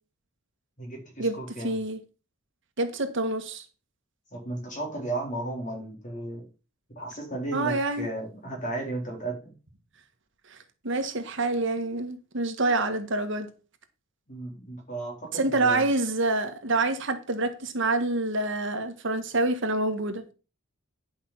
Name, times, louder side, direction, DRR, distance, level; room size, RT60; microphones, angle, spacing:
voice 1, 0.8-1.8 4.3-6.5 7.0-9.5 14.3-15.9, right 2 dB, 40° left, 4.0 m, -34 dB
voice 2, 1.6-2.0 2.8-3.6 7.5-8.1 10.5-10.6 10.8-13.5 15.3-20.2, right 2 dB, 60° right, 1.6 m, -27 dB
11.0 x 5.6 x 5.7 m
head